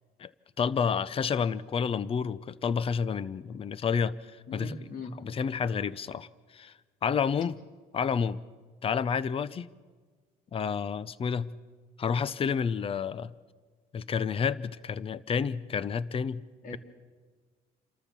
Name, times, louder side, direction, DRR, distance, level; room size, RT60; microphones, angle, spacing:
voice 1, 0.6-4.8 5.2-6.7 7.0-7.6 7.9-8.4 8.8-9.7 10.5-11.5 12.0-13.3 13.9-16.4, left 6 dB, 35° left, 19 dB, 0.6 m, -30 dB
voice 2, 4.5-5.2 16.6-16.8, left 3 dB, 55° left, 6 dB, 2.7 m, -39 dB
29.0 x 13.0 x 7.0 m, 1.5 s
cardioid pair, 110°, 17 cm